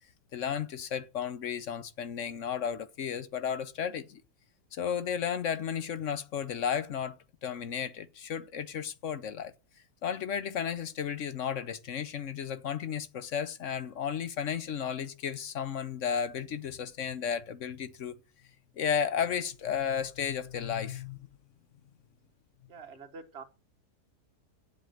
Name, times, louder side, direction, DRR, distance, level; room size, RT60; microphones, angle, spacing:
voice 1, 0.3-4.2 4.7-9.5 10.0-18.2 18.8-21.2, left 8 dB, 60° left, 1.0 m, -33 dB
voice 2, 22.7-23.4, right 5 dB, 40° right, 1.6 m, -46 dB
8.0 x 7.4 x 7.7 m
omnidirectional pair, 1.7 m